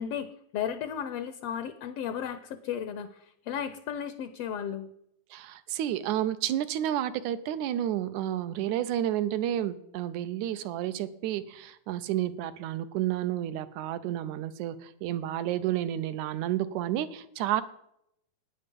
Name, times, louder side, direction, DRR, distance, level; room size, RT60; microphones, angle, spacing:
voice 1, 0.0-4.9, left 8 dB, 75° left, 12 dB, 1.4 m, -34 dB
voice 2, 5.3-17.6, right 12 dB, 85° right, 13 dB, 2.1 m, -31 dB
15.5 x 9.8 x 5.3 m, 0.78 s
omnidirectional pair, 3.4 m